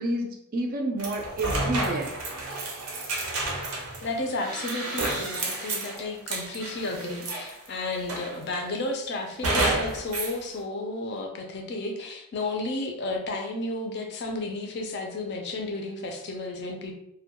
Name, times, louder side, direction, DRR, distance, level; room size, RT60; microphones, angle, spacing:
voice 1, 0.0-2.2 2.4-2.8, right 1 dB, 40° right, 3 dB, 0.3 m, -30 dB
sound 1, 1.0-7.7 8.1-8.7 9.4-10.4, right 2 dB, 80° right, 0.6 m, -30 dB
voice 2, 4.0-17.0, left 2 dB, 50° left, 3 dB, 0.4 m, -32 dB
2.2 x 2.1 x 2.8 m, 0.78 s
head